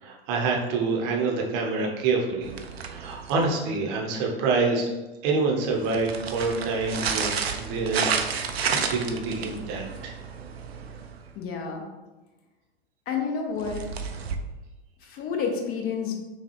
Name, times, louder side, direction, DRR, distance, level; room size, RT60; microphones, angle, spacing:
voice 1, 0.0-2.5 2.8-4.9 5.2-8.0 8.3-8.4 8.7-10.2, right 4 dB, 35° right, 0 dB, 0.8 m, -27 dB
sound 1, 2.4-3.6 5.7-11.3 13.6-14.4, right 6 dB, 80° right, 0.5 m, -31 dB
voice 2, 11.3-11.8 13.1-13.8 15.0-16.1, left 6 dB, 30° left, 2 dB, 0.8 m, -29 dB
5.8 x 2.3 x 2.9 m, 1.1 s
figure-of-eight pair, 95°, 31 cm